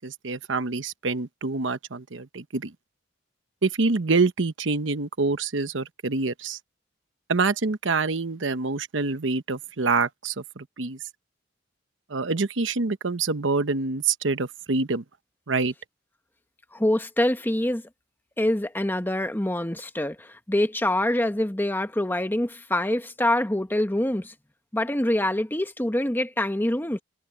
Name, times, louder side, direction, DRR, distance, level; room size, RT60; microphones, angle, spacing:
voice 1, 0.0-2.7 3.6-6.6 7.3-11.0 12.1-15.0 15.5-15.7, right 4 dB, 75° right, 1.0 m, -26 dB
voice 2, 16.7-17.8 18.4-24.3 24.7-27.0, left 1 dB, 10° left, 1.0 m, -25 dB
head